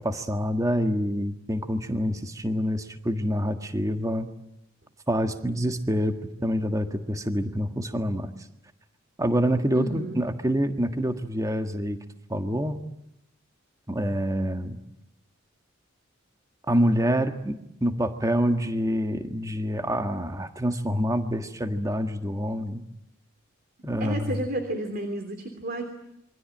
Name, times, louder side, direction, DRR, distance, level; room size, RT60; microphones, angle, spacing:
voice 1, 0.0-4.3 5.1-8.3 9.2-12.0 12.3-12.8 13.9-14.8 16.7-22.8 23.8-24.4, equal, 15° right, 6 dB, 1.6 m, -26 dB
voice 2, 9.7-10.2 24.0-25.8, right 1 dB, 45° right, 7 dB, 3.1 m, -31 dB
27.5 x 24.0 x 9.0 m, 0.82 s
head